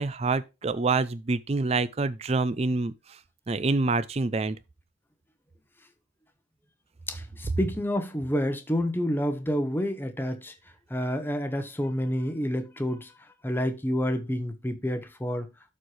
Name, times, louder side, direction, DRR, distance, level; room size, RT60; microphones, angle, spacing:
voice 1, 0.0-3.2 3.5-4.6, right 3 dB, 35° right, 0.4 m, -26 dB
voice 2, 7.1-10.5 10.9-13.1 13.4-15.5, equal, 10° left, 0.9 m, -29 dB
12.5 x 4.4 x 3.2 m
head